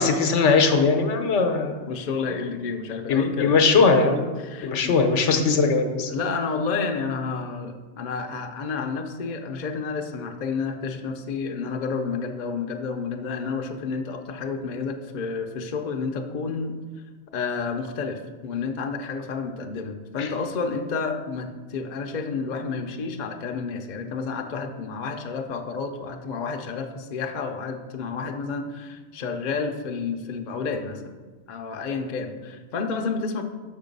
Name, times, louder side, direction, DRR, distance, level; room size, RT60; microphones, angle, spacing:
voice 1, 0.0-1.8 3.1-4.3 4.6-6.1 20.2-20.3, left 4 dB, 75° left, 5 dB, 1.1 m, -20 dB
voice 2, 1.9-3.6 4.4-5.0 5.4-5.5 6.0-16.7 17.3-31.1 31.5-33.4, left 5 dB, 45° left, 4 dB, 0.7 m, -30 dB
6.6 x 5.4 x 5.2 m, 1.4 s
omnidirectional pair, 1.2 m